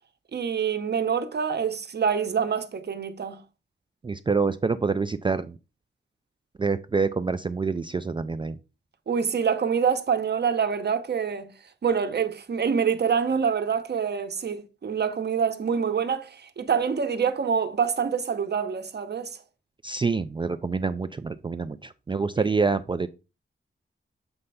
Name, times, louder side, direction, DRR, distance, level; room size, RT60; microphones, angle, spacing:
voice 1, 0.3-3.4 9.1-11.5 11.8-19.4, right 6 dB, 55° right, 0.9 m, -26 dB
voice 2, 4.0-5.6 6.6-8.6 19.8-23.1, right 4 dB, 25° right, 0.3 m, -26 dB
7.9 x 3.3 x 5.5 m
wide cardioid pair, 145°, 21 cm